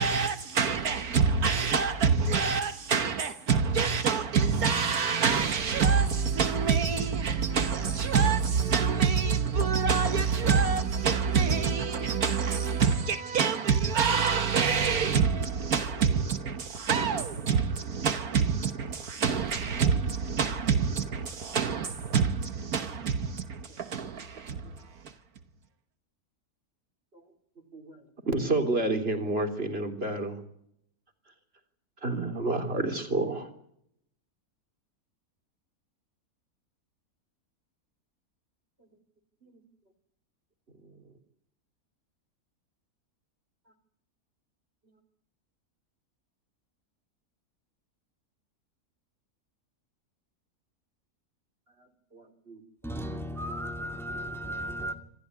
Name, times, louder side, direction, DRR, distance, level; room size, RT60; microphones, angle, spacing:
voice 1, 0.0-25.1, right 6 dB, 70° right, 1.6 m, -26 dB
voice 2, 28.3-30.4 32.0-33.5 52.1-53.2, right 2 dB, 40° right, 3.8 m, -30 dB
voice 3, 52.8-54.9, equal, ahead, 2.2 m, -35 dB
26.5 x 15.0 x 9.7 m
omnidirectional pair, 1.6 m